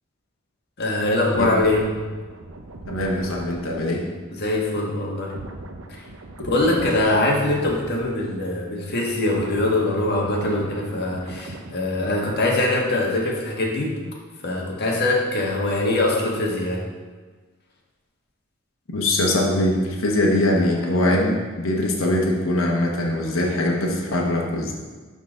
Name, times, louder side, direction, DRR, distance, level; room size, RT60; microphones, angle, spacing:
voice 1, 0.8-1.8 4.4-5.3 5.9-6.0 6.4-13.9 14.4-16.8, left 2 dB, 55° left, -2 dB, 1.5 m, -22 dB
sound 1, 1.3-8.8 9.0-12.8 13.0-13.3, right 2 dB, 75° right, 0.7 m, -40 dB
voice 2, 2.9-4.0 6.4-6.5 18.9-24.7, left 1 dB, 75° left, -1 dB, 1.1 m, -22 dB
11.5 x 3.9 x 3.8 m, 1.4 s
head